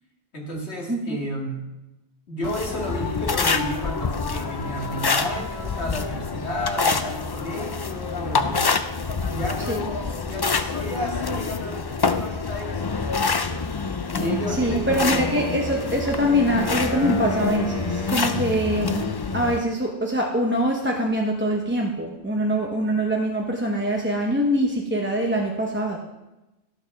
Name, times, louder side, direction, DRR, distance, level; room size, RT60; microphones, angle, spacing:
voice 1, 0.3-1.7 2.3-8.8 9.2-13.8 14.1-15.4, equal, 80° left, -1 dB, 2.5 m, -32 dB
sound 1, 2.4-19.6, left 4 dB, 35° left, 0.4 m, -26 dB
voice 2, 14.5-26.0, equal, 10° right, -1 dB, 0.9 m, -24 dB
Wind instrument woodwind instrument, 15.0-19.2, equal, 65° left, 2.2 m, -36 dB
12.5 x 6.8 x 6.0 m, 1.0 s
omnidirectional pair, 1.1 m